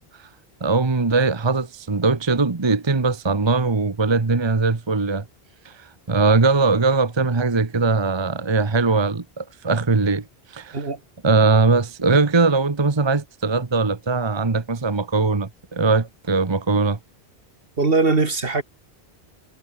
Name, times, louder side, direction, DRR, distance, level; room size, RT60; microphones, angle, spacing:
voice 1, 0.6-5.2 5.6-10.2 10.5-10.8 11.2-17.0, right 3 dB, 25° right, 1.1 m, -20 dB
voice 2, 17.8-18.6, right 3 dB, 65° right, 2.4 m, -20 dB
omnidirectional pair, 1.1 m